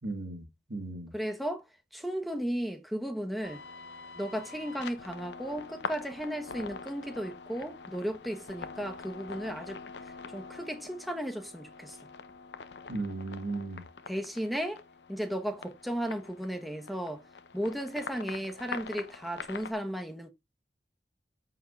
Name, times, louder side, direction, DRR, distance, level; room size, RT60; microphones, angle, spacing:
voice 1, 0.0-1.1 12.9-13.8, right 2 dB, 70° right, 1.7 m, -36 dB
voice 2, 1.1-1.6 1.9-3.6 4.2-9.8 10.3-12.0 14.1-14.8 15.1-17.2 17.5-20.3, equal, ahead, 0.9 m, -35 dB
sound 1, 3.4-19.7, left 5 dB, 80° left, 0.7 m, -44 dB
13.5 x 4.8 x 2.3 m
head